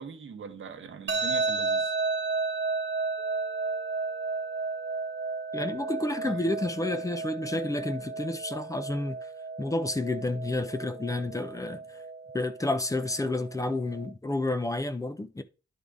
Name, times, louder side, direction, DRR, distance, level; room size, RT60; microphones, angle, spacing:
voice 1, 0.0-1.9 6.2-6.5, right 6 dB, 85° right, 1.0 m, -42 dB
sound 1, 1.1-14.1, right 4 dB, 65° right, 1.1 m, -33 dB
sound 2, 3.2-12.7, left 3 dB, 85° left, 3.2 m, -53 dB
voice 2, 5.5-9.2 9.6-11.8 12.3-15.4, left 2 dB, 15° left, 0.6 m, -30 dB
10.5 x 3.8 x 3.5 m
wide cardioid pair, 120°, 20 cm